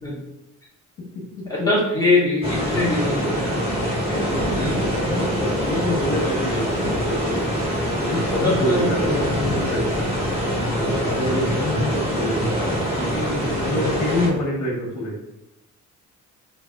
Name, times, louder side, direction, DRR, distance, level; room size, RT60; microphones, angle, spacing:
voice 1, 1.5-4.2 4.5-4.8 8.4-9.2 12.9-13.5, left 2 dB, 10° left, -7 dB, 1.4 m, -23 dB
sound 1, 2.4-14.3, equal, 20° right, 1.3 m, -24 dB
Thunder / Rain, 4.3-14.2, equal, 85° right, 1.2 m, -36 dB
voice 2, 5.0-7.4 8.0-9.9 10.7-12.8 13.6-15.2, left 1 dB, 65° left, -3 dB, 1.2 m, -26 dB
3.3 x 2.9 x 2.3 m, 0.91 s
cardioid pair, 90°, 30 cm